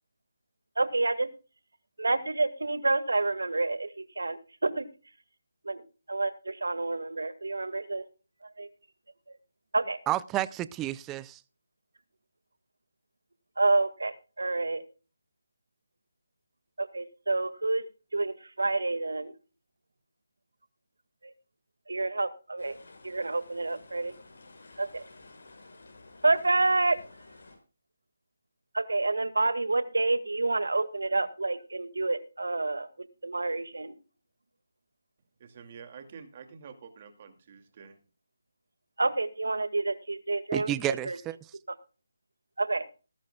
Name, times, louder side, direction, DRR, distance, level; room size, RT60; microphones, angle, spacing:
voice 1, 0.8-1.3 2.0-3.9 4.2-4.9 5.6-5.8 6.1-8.0 8.6-8.7 9.7-10.0 13.6-14.8 16.8-17.9 18.1-19.3 21.2-21.3 21.9-22.8 23.0-24.1 24.8-25.1 26.2-27.0 28.7-32.9 33.2-33.9 39.0-41.2 42.6-42.9, right 2 dB, 80° right, 1.8 m, -28 dB
voice 2, 10.1-11.4 40.5-41.4, right 14 dB, 15° right, 0.5 m, -31 dB
sound 1, 22.6-27.6, left 2 dB, 65° left, 6.4 m, -53 dB
voice 3, 35.4-38.0, right 6 dB, 40° right, 2.4 m, -48 dB
20.0 x 11.5 x 2.3 m
figure-of-eight pair, 155°, 0 cm